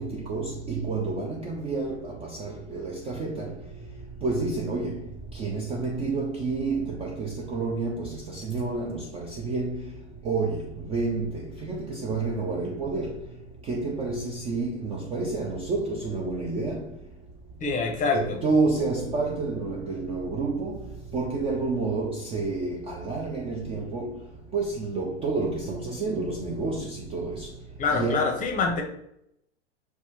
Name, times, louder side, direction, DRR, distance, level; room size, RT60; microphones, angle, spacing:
voice 1, 0.0-3.5 4.2-5.0 5.3-9.8 10.2-13.2 13.7-16.9 18.1-20.9 21.1-24.1 24.5-27.5 27.9-28.3, right 3 dB, 20° right, 0.3 m, -29 dB
voice 2, 17.6-18.4 27.8-28.8, left 4 dB, 20° left, 0.7 m, -25 dB
5.3 x 2.3 x 3.0 m
figure-of-eight pair, 85°, 35 cm